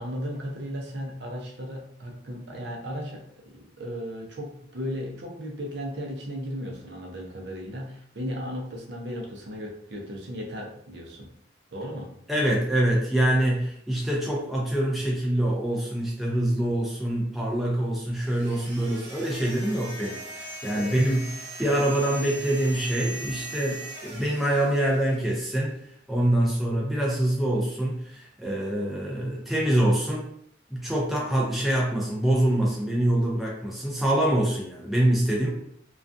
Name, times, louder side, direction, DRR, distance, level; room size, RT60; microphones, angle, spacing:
voice 1, 0.0-11.3 11.7-12.1 20.7-21.0, equal, 70° right, 0 dB, 0.6 m, -36 dB
voice 2, 12.3-25.7 26.1-30.3 30.7-35.5, right 1 dB, ahead, -4 dB, 0.4 m, -25 dB
sound 1, 18.1-25.5, right 2 dB, 35° right, 0.8 m, -40 dB
2.3 x 2.3 x 2.5 m, 0.65 s
head